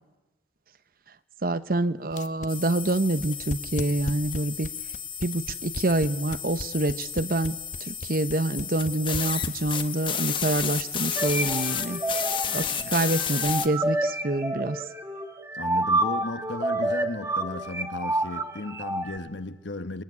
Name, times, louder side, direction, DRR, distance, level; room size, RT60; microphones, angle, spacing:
voice 1, 1.4-4.7 5.2-12.0 12.5-14.8, right 2 dB, 50° right, 0.9 m, -26 dB
sound 1, 2.1-10.0, left 2 dB, 40° left, 0.9 m, -35 dB
sound 2, 2.5-13.7, left 8 dB, 25° left, 1.1 m, -32 dB
sound 3, 11.2-19.2, right 2 dB, 15° right, 1.4 m, -29 dB
voice 2, 15.5-20.0, left 2 dB, 80° left, 1.3 m, -35 dB
27.5 x 22.0 x 9.6 m
head